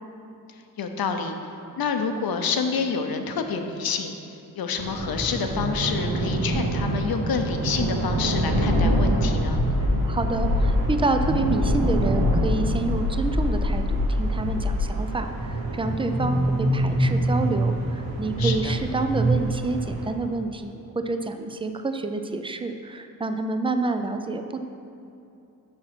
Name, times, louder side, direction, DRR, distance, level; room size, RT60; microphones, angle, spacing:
voice 1, 0.8-1.4 1.8-4.1 4.5-9.6 18.4-18.8, left 5 dB, 80° left, 5 dB, 0.7 m, -28 dB
sound 1, 4.8-20.1, right 2 dB, 80° right, 1.2 m, -26 dB
sound 2, 8.5-14.9, left 2 dB, 45° left, 0.6 m, -25 dB
voice 2, 10.0-24.4, right 3 dB, 15° right, 7 dB, 0.3 m, -28 dB
6.4 x 6.0 x 6.0 m, 2.7 s
wide cardioid pair, 170°, 36 cm